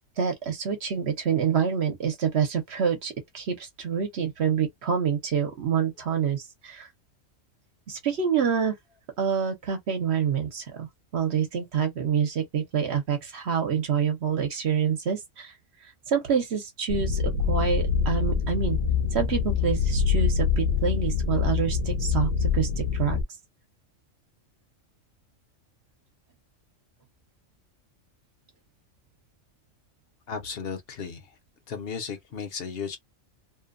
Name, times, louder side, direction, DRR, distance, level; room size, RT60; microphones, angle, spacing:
voice 1, 0.2-6.9 7.9-8.8 9.2-10.9 11.1-15.5 16.1-18.8 19.1-23.2, right 7 dB, 60° right, 1.0 m, -27 dB
sound 1, 16.9-23.2, left 6 dB, 80° left, 0.3 m, -25 dB
voice 2, 30.3-31.3 31.7-33.0, left 6 dB, 55° left, 0.9 m, -35 dB
2.7 x 2.1 x 2.5 m
omnidirectional pair, 1.3 m